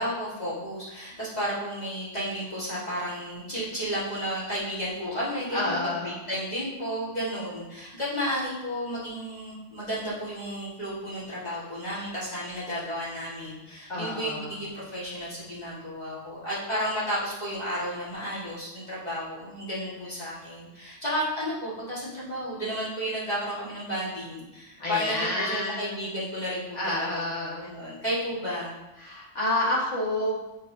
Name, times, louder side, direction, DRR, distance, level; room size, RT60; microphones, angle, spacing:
voice 1, 0.0-28.7, equal, 35° left, -10 dB, 1.8 m, -32 dB
voice 2, 5.5-6.2 13.9-14.5 24.8-26.0 26.7-27.7 29.0-30.4, left 1 dB, 70° left, -4 dB, 1.8 m, -29 dB
7.9 x 4.8 x 2.7 m, 1.0 s
omnidirectional pair, 1.3 m